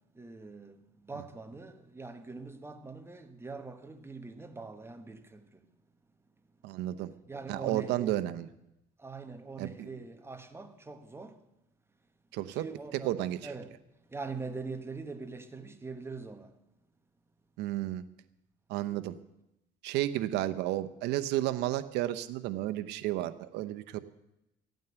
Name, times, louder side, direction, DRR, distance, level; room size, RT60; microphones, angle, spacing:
voice 1, 0.2-0.8 1.1-5.4 7.3-8.2 9.0-11.4 12.5-13.2 13.4-13.7 14.1-16.5, right 4 dB, 15° right, 1.3 m, -43 dB
voice 2, 6.6-7.1 7.5-8.5 9.6-9.9 12.3-12.7 13.0-13.4 17.6-18.0 18.7-19.2 19.8-24.0, right 14 dB, 90° right, 0.8 m, -32 dB
14.5 x 9.2 x 8.0 m
cardioid pair, 110°, 17 cm